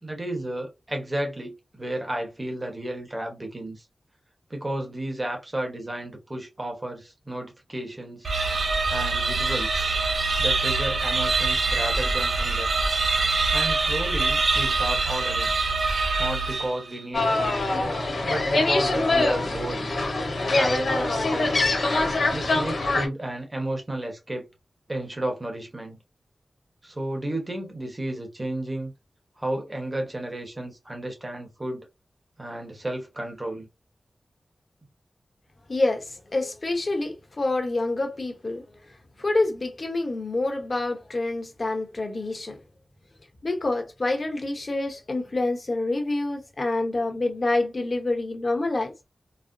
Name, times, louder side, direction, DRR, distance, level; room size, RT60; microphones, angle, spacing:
voice 1, 0.0-3.9 4.5-8.3 8.9-9.8 10.4-12.7 13.5-15.5 16.2-17.5 18.2-19.9 20.5-21.5 22.3-24.5 24.9-26.0 26.8-28.9 29.4-31.9 32.4-33.7, right 1 dB, 20° right, 1.1 m, -32 dB
sound 1, 8.2-16.9, right 3 dB, 60° right, 0.7 m, -24 dB
sound 2, 17.1-23.1, left 2 dB, 75° left, 1.2 m, -24 dB
voice 2, 35.7-38.6 39.2-42.5 43.4-48.9, left 2 dB, 40° left, 0.9 m, -27 dB
4.1 x 2.0 x 2.6 m
wide cardioid pair, 110°, 0 cm